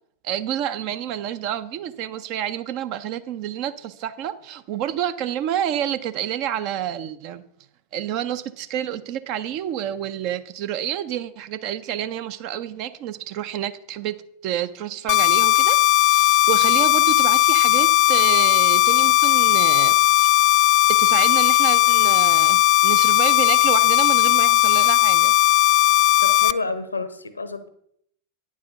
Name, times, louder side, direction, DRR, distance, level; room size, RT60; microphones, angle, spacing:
voice 1, 0.2-7.4 7.9-14.2 14.4-20.3 21.0-25.3, right 10 dB, 45° right, 11 dB, 0.5 m, -29 dB
sound 1, 15.1-26.5, left 14 dB, 40° left, 0.3 m, -17 dB
voice 2, 26.2-27.7, left 3 dB, 80° left, 13 dB, 0.8 m, -29 dB
9.2 x 4.8 x 6.8 m, 0.70 s
figure-of-eight pair, 90°, 0 cm